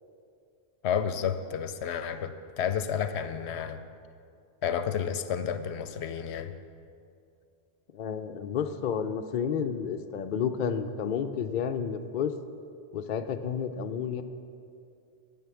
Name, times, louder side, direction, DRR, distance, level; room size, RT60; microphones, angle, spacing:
voice 1, 0.8-3.8 4.6-6.5, left 8 dB, 80° left, 10 dB, 0.9 m, -31 dB
voice 2, 7.9-12.3 12.9-14.2, left 7 dB, 55° left, 7 dB, 0.6 m, -31 dB
9.4 x 8.9 x 6.9 m, 2.5 s
omnidirectional pair, 1.1 m